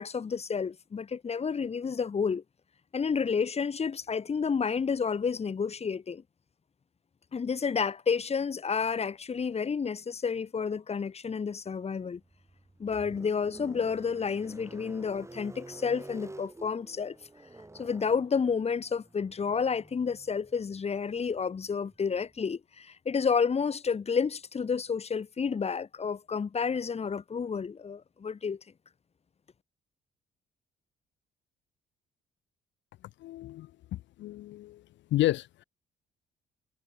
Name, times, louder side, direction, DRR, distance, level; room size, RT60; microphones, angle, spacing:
voice 1, 0.0-2.4 2.9-6.2 7.3-12.2 12.8-17.2 17.7-28.6, left 6 dB, 30° left, 1.0 m, -30 dB
sound 1, 12.1-22.4, right 2 dB, 15° right, 4.4 m, -50 dB
voice 2, 33.2-34.8 35.1-35.6, left 15 dB, 65° left, 0.4 m, -31 dB
cardioid pair, 90°, 20 cm